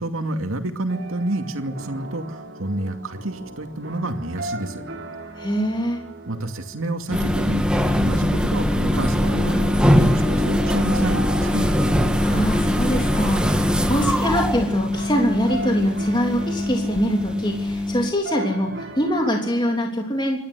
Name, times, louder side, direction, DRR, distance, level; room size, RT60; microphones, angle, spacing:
voice 1, 0.0-4.8 6.3-11.7, right 1 dB, 85° right, 6 dB, 2.4 m, -28 dB
sound 1, 0.9-19.8, right 2 dB, 55° right, 4.0 m, -38 dB
voice 2, 5.4-6.0 12.2-20.4, equal, 20° left, 1 dB, 3.2 m, -24 dB
sound 2, 7.1-18.1, left 1 dB, 5° right, 1.5 m, -21 dB
27.5 x 12.5 x 8.2 m, 0.77 s
head